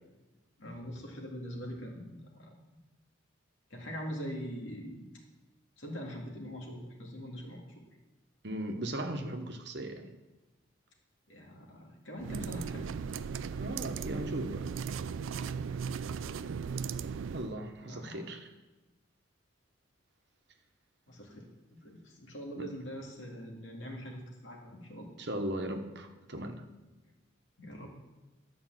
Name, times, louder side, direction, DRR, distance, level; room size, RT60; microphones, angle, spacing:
voice 1, 0.6-2.6 3.7-5.1 5.8-7.7 11.3-12.9 17.9-18.3 21.1-21.5 21.8-25.2 27.6-27.9, equal, 75° left, 0 dB, 2.3 m, -42 dB
voice 2, 8.4-10.1 13.6-14.7 17.3-18.5 22.6-22.7 25.2-26.6, right 1 dB, 55° right, 5 dB, 1.1 m, -37 dB
sound 1, 12.2-17.5, right 6 dB, 80° right, 0.4 m, -37 dB
11.5 x 5.3 x 7.5 m, 1.1 s
head